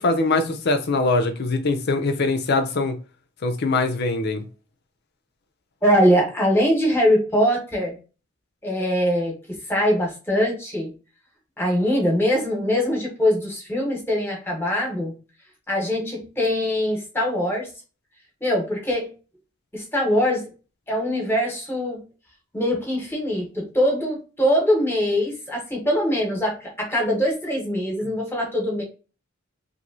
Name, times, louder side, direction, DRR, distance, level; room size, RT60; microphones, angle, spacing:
voice 1, 0.0-3.0 3.4-4.4, left 3 dB, 55° left, 0.5 m, -22 dB
voice 2, 5.8-8.0 8.6-10.9 11.6-15.1 15.7-17.7 18.4-19.1 19.7-20.4 20.9-22.0 22.5-28.8, equal, 10° left, 1.1 m, -22 dB
3.0 x 2.7 x 2.7 m
head